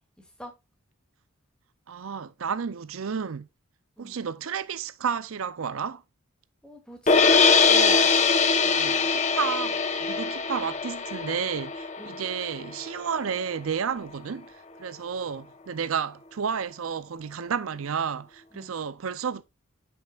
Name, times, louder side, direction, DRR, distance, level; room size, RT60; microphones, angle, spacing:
voice 1, 0.2-0.5 4.0-4.1 6.6-7.2 7.7-8.1 12.0-12.2 18.5-18.7, equal, 5° left, 2.3 m, -42 dB
voice 2, 1.9-3.5 4.0-6.0 8.6-19.4, right 6 dB, 75° right, 0.5 m, -31 dB
sound 1, 7.1-13.2, left 5 dB, 35° left, 0.9 m, -22 dB
10.0 x 6.4 x 2.4 m
head